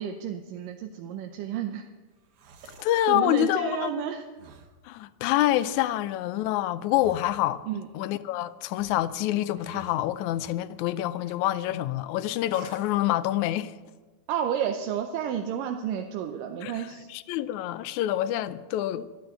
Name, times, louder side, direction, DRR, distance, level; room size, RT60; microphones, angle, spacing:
voice 1, 0.0-1.9 3.1-4.3 7.7-7.9 14.3-17.1, right 9 dB, 80° right, 2.4 m, -31 dB
sound 1, 2.1-3.0 4.3-4.8 5.4-6.0 6.9-7.5 8.7-10.6 11.2-11.8 12.5-13.0, right 6 dB, 65° right, 1.4 m, -50 dB
voice 2, 2.8-4.0 4.9-7.6 7.9-13.7 16.6-19.1, left 14 dB, 75° left, 1.8 m, -27 dB
13.5 x 12.5 x 8.0 m
omnidirectional pair, 3.9 m